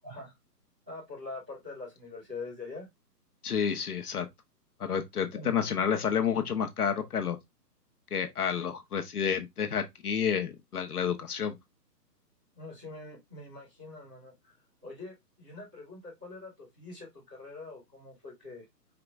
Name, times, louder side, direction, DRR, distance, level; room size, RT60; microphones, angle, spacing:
voice 1, 0.9-2.9 5.3-5.5 12.5-14.5 14.8-18.6, left 3 dB, 5° right, 0.9 m, -44 dB
voice 2, 3.4-4.3 4.8-7.4 8.1-11.5, left 7 dB, 65° left, 1.1 m, -30 dB
4.9 x 3.1 x 3.4 m
hypercardioid pair, 175°, 49 cm